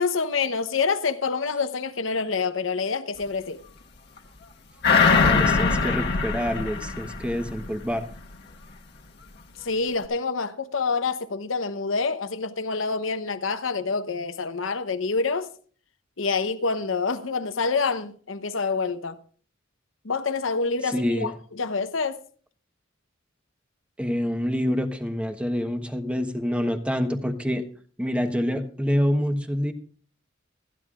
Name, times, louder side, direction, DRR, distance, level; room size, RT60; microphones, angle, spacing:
voice 1, 0.0-3.6 9.6-15.5 16.2-19.2 20.0-22.2, left 4 dB, 75° left, 0.9 m, -27 dB
sound 1, 4.8-7.7 8.1-8.2, left 4 dB, 55° left, 1.5 m, -22 dB
voice 2, 5.1-8.1 20.9-21.3 24.0-27.6 28.0-29.7, equal, 5° right, 1.1 m, -26 dB
25.0 x 10.0 x 2.5 m
head